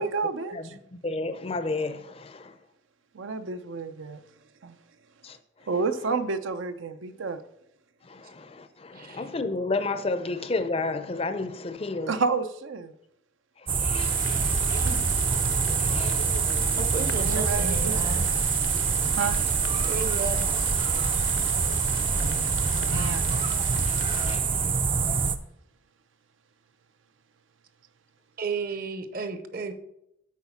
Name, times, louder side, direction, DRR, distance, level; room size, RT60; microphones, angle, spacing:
voice 1, 0.0-0.8 3.1-4.2 4.6-4.7 5.7-7.4 12.1-12.9 17.2-18.0 19.1-19.4 22.9-23.3, right 4 dB, 75° right, 0.6 m, -30 dB
voice 2, 0.9-2.5 5.2-5.4 8.1-12.1 13.7-14.4 15.8-16.6 21.1-21.3 21.9-22.3 22.7-23.4 23.9-24.9, left 3 dB, 30° left, 0.5 m, -32 dB
voice 3, 8.9-9.3 14.3-15.1 16.8-18.3 19.8-20.5 28.4-29.7, right 4 dB, 45° right, 0.8 m, -34 dB
sound 1, 13.7-25.4, right 5 dB, 25° right, 0.4 m, -25 dB
sound 2, 14.0-24.4, left 7 dB, 75° left, 0.7 m, -40 dB
8.3 x 4.9 x 6.9 m
head